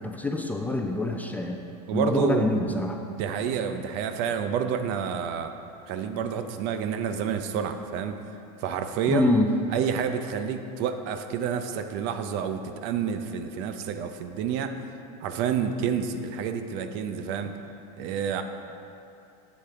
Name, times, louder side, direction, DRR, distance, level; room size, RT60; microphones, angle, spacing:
voice 1, 0.0-1.6 1.9-3.0 9.1-9.5, left 2 dB, 10° left, 3 dB, 0.4 m, -25 dB
voice 2, 1.9-2.5 3.0-5.5 5.9-8.1 8.6-9.3 9.7-14.8 15.2-17.5 18.0-18.4, right 7 dB, 55° right, 8 dB, 0.6 m, -29 dB
8.1 x 7.3 x 3.3 m, 2.7 s
supercardioid pair, 120°, 21 cm